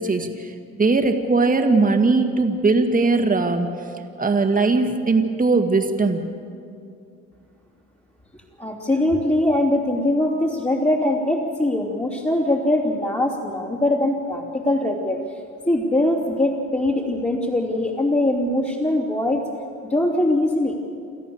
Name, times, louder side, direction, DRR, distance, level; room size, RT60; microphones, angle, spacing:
voice 1, 0.0-3.7 4.2-6.2, right 3 dB, 25° right, 5 dB, 2.0 m, -19 dB
voice 2, 8.6-15.2 15.7-19.4 19.8-20.8, left 1 dB, 20° left, -5 dB, 3.2 m, -22 dB
29.0 x 13.5 x 7.2 m, 2.4 s
cardioid pair, 90°, 30 cm